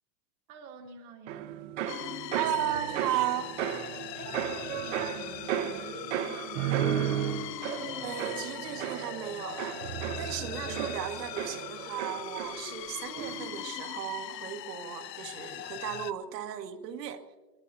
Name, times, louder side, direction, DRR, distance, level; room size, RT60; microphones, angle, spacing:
voice 1, 0.5-1.8 4.1-7.0, right 5 dB, 20° right, 6 dB, 0.6 m, -48 dB
sound 1, 1.3-12.9 13.2-13.7, right 10 dB, 50° right, 0.8 m, -34 dB
sound 2, 1.9-16.1, left 15 dB, 80° left, 0.7 m, -41 dB
voice 2, 2.3-3.5 8.0-17.2, right 10 dB, 75° right, 6 dB, 1.6 m, -35 dB
21.5 x 20.5 x 2.8 m, 1.3 s
supercardioid pair, 170°, 49 cm